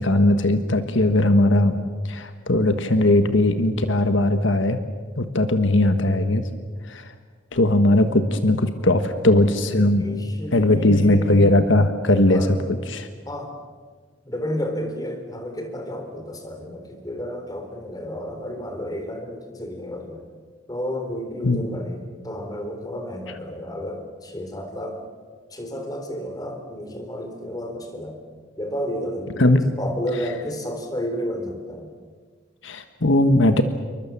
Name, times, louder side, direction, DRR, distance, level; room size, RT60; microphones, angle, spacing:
voice 1, 0.0-1.8 2.0-4.8 5.2-6.5 6.8-7.1 7.5-10.0 10.5-12.5 12.9-13.1 21.4-21.8 29.4-29.6 32.6-33.6, left 1 dB, 75° left, 9 dB, 1.5 m, -19 dB
voice 2, 9.8-11.4 12.3-12.8 13.3-13.5 14.3-20.2 20.7-25.0 25.5-28.2 28.6-31.9, equal, 20° left, 5 dB, 3.9 m, -31 dB
28.0 x 23.5 x 7.4 m, 1.6 s
head